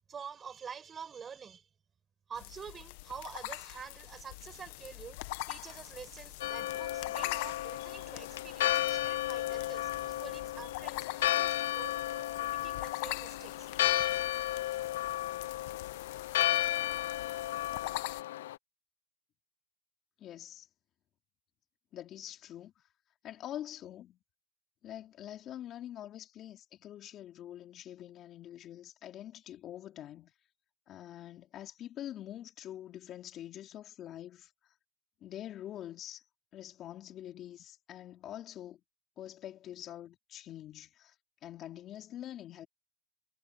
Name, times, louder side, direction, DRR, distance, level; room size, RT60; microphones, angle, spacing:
voice 1, 0.1-1.7 2.3-13.7, right 7 dB, 25° right, 5.9 m, -48 dB
sound 1, 2.4-18.2, left 21 dB, 70° left, 1.2 m, -44 dB
Church bell, 6.4-18.6, left 14 dB, 85° left, 0.6 m, -33 dB
sound 2, 8.6-11.4, right 17 dB, 50° right, 4.1 m, -63 dB
voice 2, 20.2-20.7 21.9-22.7 23.2-24.2 24.8-30.3 30.9-34.7 35.2-36.2 36.5-38.8 39.2-41.1 41.4-42.7, left 12 dB, 40° left, 3.3 m, -45 dB
supercardioid pair, 115°, 0 cm